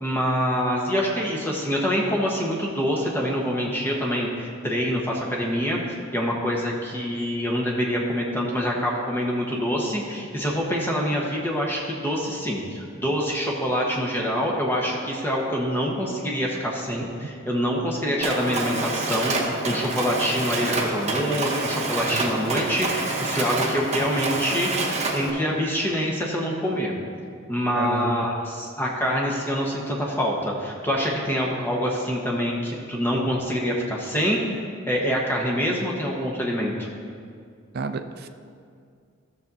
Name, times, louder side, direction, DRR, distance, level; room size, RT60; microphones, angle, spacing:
voice 1, 0.0-5.8 6.1-26.9 27.5-34.4 34.9-36.7, equal, 10° left, -2 dB, 1.1 m, -25 dB
Mechanisms, 18.2-25.3, right 3 dB, 35° right, 0.9 m, -27 dB
voice 2, 27.7-28.3 37.7-38.3, right 4 dB, 50° right, 8 dB, 0.4 m, -30 dB
14.0 x 7.0 x 2.7 m, 2.2 s
head